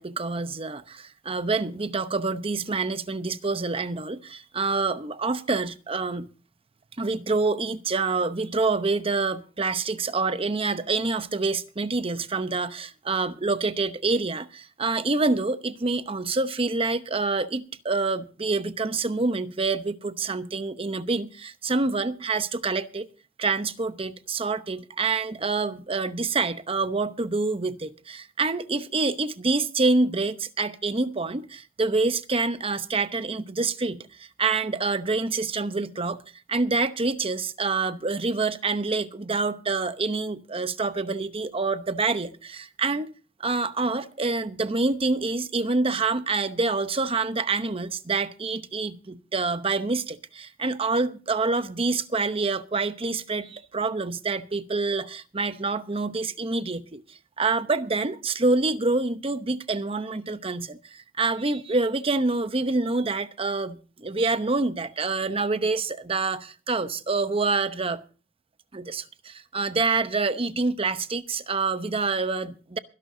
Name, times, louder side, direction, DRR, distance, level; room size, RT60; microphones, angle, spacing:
voice 1, 0.0-6.3 7.0-23.1 23.4-36.2 36.5-43.1 43.4-68.0 68.7-72.8, right 3 dB, 30° right, 0.8 m, -27 dB
23.5 x 11.5 x 2.7 m
head